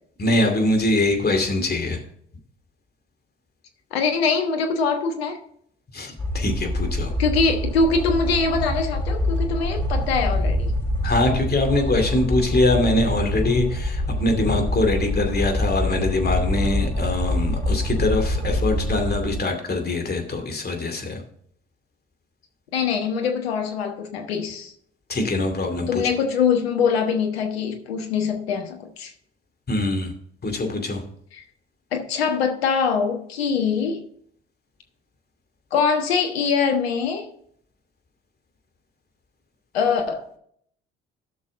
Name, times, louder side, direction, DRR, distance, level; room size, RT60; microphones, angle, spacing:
voice 1, 0.2-2.0 5.9-7.1 11.0-21.2 25.1-26.1 29.7-30.1 30.4-31.0, left 2 dB, 30° left, 4 dB, 2.5 m, -23 dB
voice 2, 3.9-5.4 7.2-10.7 22.7-24.7 25.9-29.1 31.3-31.4 31.9-34.0 35.7-37.3 39.7-40.3, left 5 dB, 85° left, 4 dB, 1.3 m, -23 dB
sound 1, 6.2-19.4, left 1 dB, 5° left, 4.6 m, -25 dB
13.0 x 6.3 x 3.8 m, 0.65 s
hypercardioid pair, 50°, 30 cm